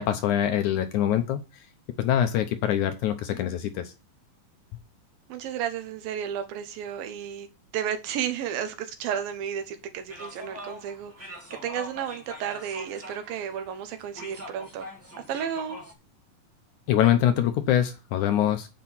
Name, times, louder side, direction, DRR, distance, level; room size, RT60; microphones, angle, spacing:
voice 1, 0.0-1.7 2.0-3.9 16.9-18.7, left 11 dB, 75° left, 8 dB, 2.0 m, -24 dB
voice 2, 5.3-7.5 7.7-11.4 11.6-14.9 15.3-15.8, right 9 dB, 85° right, 8 dB, 2.9 m, -32 dB
sound 1, 10.1-15.9, equal, 5° right, 2.1 m, -43 dB
8.4 x 5.0 x 7.4 m, 0.29 s
omnidirectional pair, 4.0 m